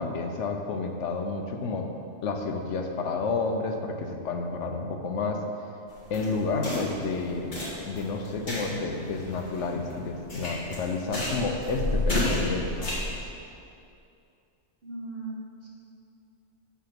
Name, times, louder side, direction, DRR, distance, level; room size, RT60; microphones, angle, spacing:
voice 1, 0.0-1.9 2.2-5.4 6.1-7.6 7.9-12.9, left 3 dB, 85° left, 4 dB, 1.1 m, -30 dB
sound 1, 5.9-13.2, left 1 dB, 40° left, 2.0 m, -32 dB
voice 2, 14.8-15.7, right 2 dB, 55° right, -5 dB, 1.9 m, -38 dB
7.0 x 6.1 x 5.9 m, 2.5 s
omnidirectional pair, 1.2 m